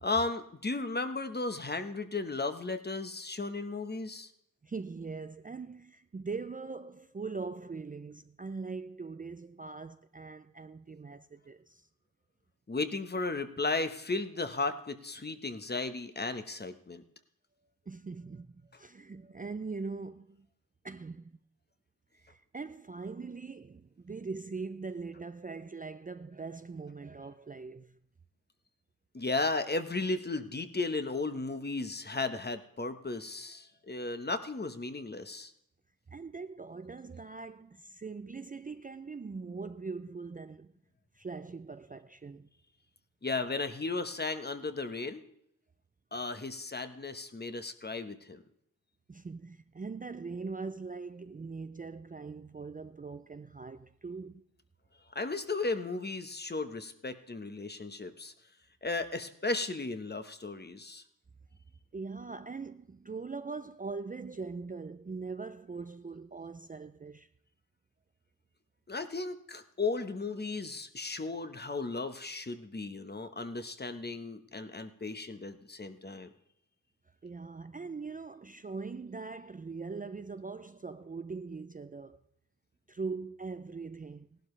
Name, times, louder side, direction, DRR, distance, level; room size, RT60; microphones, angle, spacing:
voice 1, 0.0-4.3 12.7-17.0 29.1-35.5 43.2-45.2 46.1-48.4 55.1-58.3 58.8-61.0 68.9-76.3, left 3 dB, 30° left, 1.1 m, -35 dB
voice 2, 4.6-11.9 17.9-20.5 20.8-21.4 22.1-28.0 36.1-40.7 41.1-42.5 49.1-54.4 61.9-67.3 77.2-82.2 82.9-84.4, right 4 dB, 25° right, 0.4 m, -41 dB
17.0 x 12.0 x 3.2 m
wide cardioid pair, 95°, 34 cm